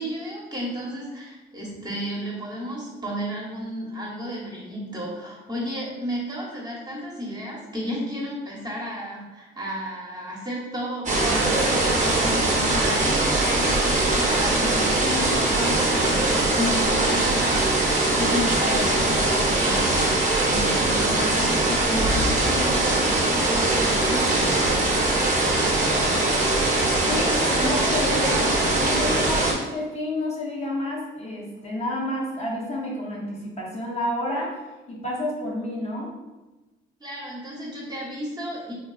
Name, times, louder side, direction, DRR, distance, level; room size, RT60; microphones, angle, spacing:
voice 1, 0.0-13.2 13.5-24.5 37.0-38.7, equal, 20° right, -3 dB, 0.9 m, -33 dB
sound 1, 11.1-29.5, right 2 dB, 40° right, 0.7 m, -21 dB
voice 2, 27.1-34.6 34.9-36.2, left 1 dB, 35° left, -3 dB, 0.7 m, -29 dB
3.4 x 2.3 x 2.3 m, 1.1 s
cardioid pair, 90°, 20 cm